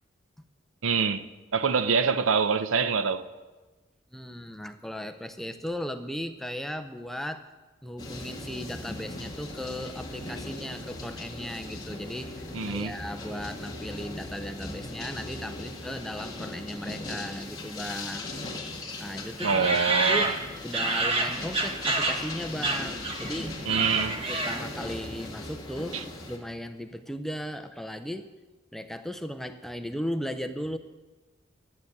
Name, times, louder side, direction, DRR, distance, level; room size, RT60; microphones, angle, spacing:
voice 1, 0.8-3.2 12.5-12.9 19.4-20.3 23.7-24.3 25.9-26.0, right 5 dB, 85° right, 0.6 m, -25 dB
voice 2, 4.1-7.5 7.8-18.3 19.0-20.3 20.6-23.6 24.3-28.3 28.7-30.8, equal, ahead, 0.5 m, -36 dB
sound 1, 8.0-26.4, left 2 dB, 20° left, 1.7 m, -39 dB
sound 2, 19.4-22.3 22.6-23.3 23.6-24.8, right 2 dB, 30° right, 1.0 m, -28 dB
12.0 x 7.8 x 8.6 m
head